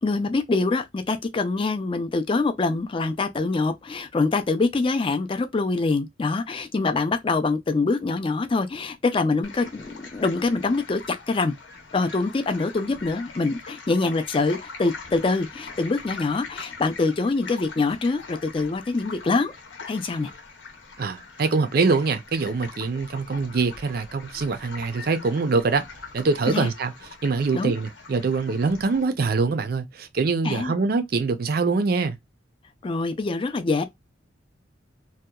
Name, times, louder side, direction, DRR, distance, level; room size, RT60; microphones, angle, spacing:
voice 1, 0.0-11.5 11.9-19.5 19.9-20.3 26.5-26.7 27.5-27.7 30.4-30.7 32.8-33.8, left 3 dB, 30° left, 0.3 m, -24 dB
sound 1, 9.4-29.0, left 4 dB, 80° left, 0.8 m, -43 dB
voice 2, 21.0-25.8 26.1-26.9 27.2-32.2, right 4 dB, 50° right, 0.4 m, -24 dB
2.8 x 2.1 x 2.2 m
head